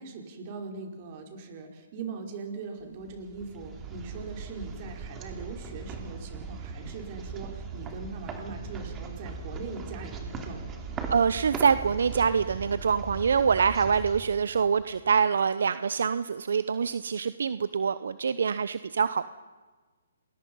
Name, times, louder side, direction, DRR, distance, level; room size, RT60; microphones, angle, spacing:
voice 1, 0.0-11.0, right 4 dB, 40° right, 3 dB, 5.1 m, -41 dB
sound 1, 3.0-15.1, right 5 dB, 20° right, 2.7 m, -39 dB
voice 2, 11.1-19.2, right 6 dB, 70° right, 14 dB, 0.8 m, -25 dB
28.5 x 20.5 x 5.6 m, 1.3 s
hypercardioid pair, 145°, 0 cm